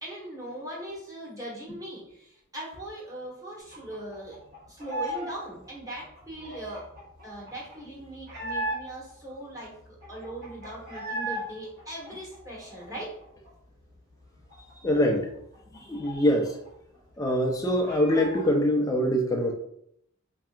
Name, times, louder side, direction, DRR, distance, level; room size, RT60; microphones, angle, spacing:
voice 1, 0.0-4.4 4.7-6.8 7.2-13.1, right 1 dB, 15° right, -6 dB, 1.1 m, -40 dB
sound 1, 3.7-5.3 5.6-9.1 9.5-9.6 9.8-11.4 11.8-13.5 13.8-13.9 14.2-16.7 16.9-17.0 17.4-18.5, right 1 dB, 45° right, 1.3 m, -37 dB
voice 2, 14.8-15.3 15.7-16.6 17.2-19.5, equal, 15° left, 1 dB, 0.5 m, -24 dB
4.5 x 2.8 x 2.4 m, 0.73 s
head